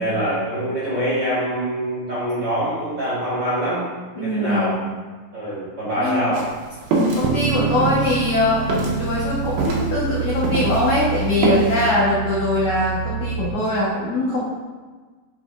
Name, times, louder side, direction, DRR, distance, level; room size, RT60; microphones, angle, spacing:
voice 1, 0.0-3.8 4.1-4.8 5.3-6.4, right 1 dB, 40° right, -10 dB, 1.7 m, -24 dB
voice 2, 4.2-4.8 6.0-6.3 7.2-8.6 8.9-14.4, left 1 dB, 70° left, -7 dB, 1.8 m, -22 dB
sound 1, 6.3-10.9 11.2-11.8, right 2 dB, 70° right, 2.7 m, -23 dB
sound 2, 7.2-13.5, right 7 dB, 90° right, 2.2 m, -27 dB
9.0 x 5.9 x 2.5 m, 1.4 s
omnidirectional pair, 5.0 m